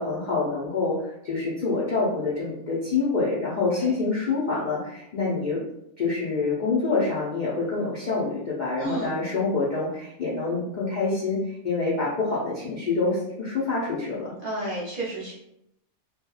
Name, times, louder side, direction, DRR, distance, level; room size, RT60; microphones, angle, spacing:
voice 1, 0.0-5.6 6.0-14.3, left 3 dB, 60° left, -7 dB, 0.4 m, -26 dB
voice 2, 8.8-9.2 14.4-15.3, right 1 dB, 55° right, -6 dB, 0.6 m, -32 dB
2.8 x 2.3 x 2.2 m, 0.79 s
omnidirectional pair, 1.5 m